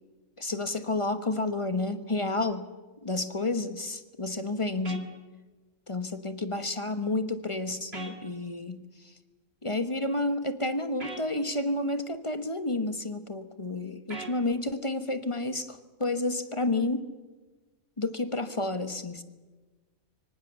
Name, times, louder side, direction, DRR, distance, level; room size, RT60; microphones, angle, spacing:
voice 1, 0.4-2.7 3.0-5.1 5.9-8.8 9.6-17.1 18.0-19.2, left 2 dB, 25° left, 10 dB, 1.2 m, -30 dB
sound 1, 4.8-5.0 7.9-8.2 11.0-11.2 14.1-14.4, right 3 dB, 45° right, 2.7 m, -39 dB
25.0 x 24.5 x 7.1 m, 1.3 s
omnidirectional pair, 1.5 m